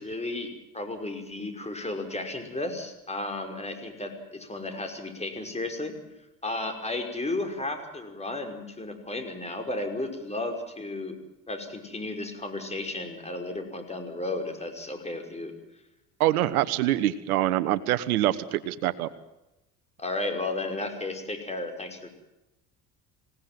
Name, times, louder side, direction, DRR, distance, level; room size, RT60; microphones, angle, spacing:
voice 1, 0.0-6.0 6.4-15.6 20.0-22.1, left 2 dB, 15° left, 6 dB, 5.5 m, -34 dB
voice 2, 16.2-19.1, right 14 dB, 80° right, 14 dB, 1.2 m, -25 dB
26.5 x 18.0 x 7.7 m, 0.95 s
hypercardioid pair, 70°, 44 cm